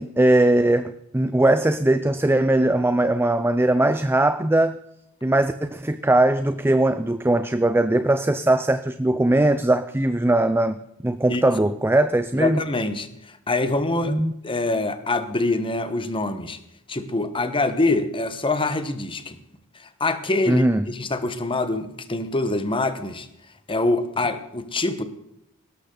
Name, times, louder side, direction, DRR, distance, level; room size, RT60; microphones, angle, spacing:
voice 1, 0.0-4.8 5.2-12.7 14.1-14.3 20.5-20.9, right 1 dB, 10° right, 11 dB, 0.5 m, -20 dB
voice 2, 12.4-13.1 13.5-14.2 14.4-16.6 16.9-19.4 20.0-23.3 23.7-25.0, left 2 dB, 25° left, 10 dB, 1.2 m, -24 dB
17.5 x 13.0 x 3.9 m, 0.80 s
head